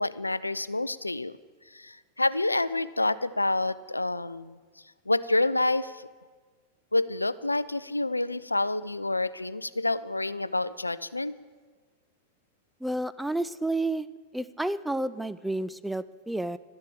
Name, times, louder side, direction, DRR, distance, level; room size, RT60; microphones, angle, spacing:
voice 1, 0.0-1.4 1.7-4.6 5.1-6.1 6.9-11.4, left 2 dB, 85° left, 17 dB, 0.4 m, -28 dB
voice 2, 12.8-14.1 14.3-16.6, right 2 dB, 5° right, 14 dB, 0.5 m, -30 dB
13.0 x 10.5 x 7.7 m, 1.5 s
figure-of-eight pair, 90°, 0 cm